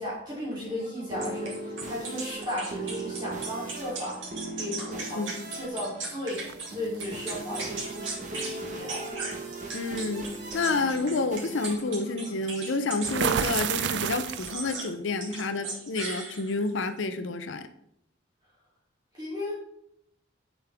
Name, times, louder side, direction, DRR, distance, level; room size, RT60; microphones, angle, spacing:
voice 1, 0.0-5.2 5.5-6.4 6.7-8.2 8.5-9.0 19.1-19.5, left 1 dB, 25° right, -7 dB, 3.1 m, -35 dB
sound 1, 0.6-13.1, right 2 dB, 40° right, 1.3 m, -39 dB
sound 2, 1.2-6.7 7.0-8.5 8.9-13.7 14.3-14.9 15.2-16.7, right 3 dB, 90° right, 2.3 m, -37 dB
sound 3, 6.4-7.0 8.4-8.6 9.1-9.3 13.0-14.7, right 8 dB, 65° right, 0.4 m, -29 dB
voice 2, 9.7-10.3 10.5-17.7, left 3 dB, 85° left, 10 dB, 0.6 m, -29 dB
8.2 x 7.0 x 3.5 m, 0.74 s
head